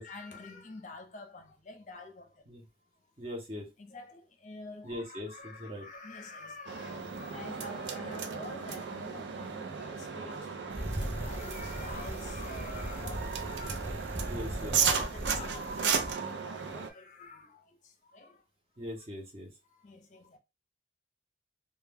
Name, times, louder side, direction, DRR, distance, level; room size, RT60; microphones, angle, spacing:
voice 1, 0.0-2.3 3.8-13.9 14.8-18.4 19.7-20.4, left 3 dB, 45° left, 0.5 m, -47 dB
voice 2, 3.2-3.7 4.8-5.9 14.3-15.1 18.8-19.5, left 1 dB, 35° right, 0.7 m, -41 dB
sound 1, 6.7-16.9, right 6 dB, 90° right, 0.4 m, -35 dB
Bicycle, 10.7-16.1, equal, 10° right, 0.3 m, -39 dB
2.2 x 2.2 x 3.3 m
head